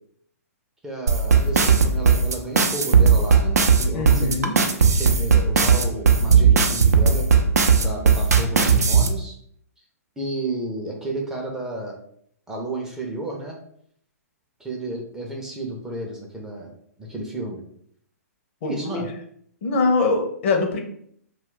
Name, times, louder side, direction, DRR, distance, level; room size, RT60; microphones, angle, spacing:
voice 1, 0.8-4.4 4.9-7.3 7.8-9.3 10.2-12.0 12.5-13.6 14.6-16.7 17.0-17.6 18.6-19.1, right 1 dB, 5° right, -1 dB, 0.5 m, -32 dB
sound 1, 1.1-9.1, right 6 dB, 80° right, 0.5 m, -16 dB
voice 2, 3.9-4.6 18.6-19.1 19.6-20.8, left 3 dB, 50° left, 3 dB, 0.6 m, -23 dB
2.3 x 2.2 x 3.7 m, 0.66 s
figure-of-eight pair, 120°, 9 cm